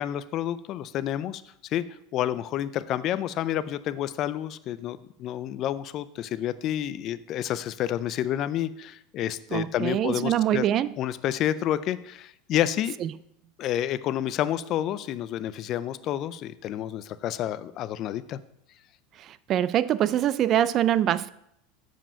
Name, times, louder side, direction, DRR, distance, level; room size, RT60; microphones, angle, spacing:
voice 1, 0.0-1.4 1.7-1.8 2.1-10.6 11.0-13.0 13.6-18.4, left 11 dB, 40° left, 15 dB, 0.4 m, -29 dB
voice 2, 9.5-10.9 13.0-13.1 19.2-21.3, right 11 dB, 40° right, 18 dB, 0.3 m, -24 dB
7.5 x 5.0 x 5.5 m, 0.76 s
supercardioid pair, 130°, 0 cm